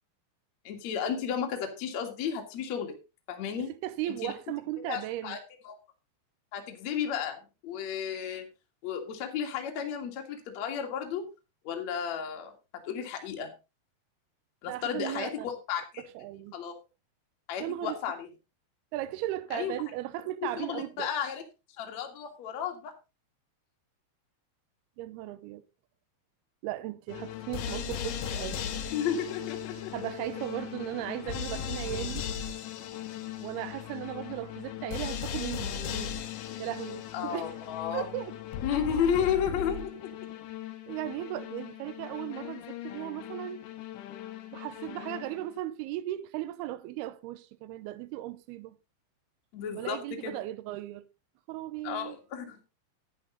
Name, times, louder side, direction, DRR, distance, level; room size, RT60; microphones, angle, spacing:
voice 1, 0.6-3.0 3.3-3.7 4.1-4.3 4.9-5.4 5.6-5.8 6.5-8.5 8.8-11.3 11.6-12.5 12.8-13.5 14.6-16.0 16.5-16.7 17.5-18.3 19.5-19.7 20.6-21.4 21.8-22.9 28.9-29.9 37.1-38.1 38.6-40.1 49.5-50.4 51.8-52.7, left 8 dB, 50° left, 2.6 m, -33 dB
voice 2, 3.6-5.4 14.7-15.3 16.2-16.5 17.6-18.0 18.9-21.1 25.0-25.6 26.6-28.6 29.9-32.3 33.4-36.1 36.6-37.6 37.9-38.4 40.9-43.7 44.5-48.8 49.8-51.0 51.5-52.2, right 15 dB, 80° right, 2.4 m, -36 dB
sound 1, 27.1-45.6, left 9 dB, 80° left, 3.5 m, -38 dB
11.0 x 10.5 x 3.9 m
omnidirectional pair, 5.1 m